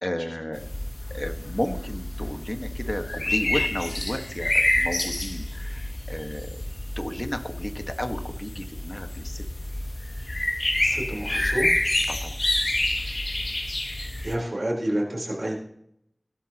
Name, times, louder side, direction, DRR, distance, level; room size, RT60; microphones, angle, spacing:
voice 1, 0.0-0.7 1.1-6.6 7.0-9.4 12.1-12.4, left 1 dB, 30° left, 6 dB, 1.5 m, -33 dB
sound 1, 0.5-14.3, left 1 dB, 60° left, 2.1 m, -28 dB
voice 2, 10.8-11.7 14.2-15.6, right 1 dB, 70° right, -2 dB, 4.1 m, -28 dB
17.0 x 12.5 x 3.0 m, 0.75 s
wide cardioid pair, 45°, 0 cm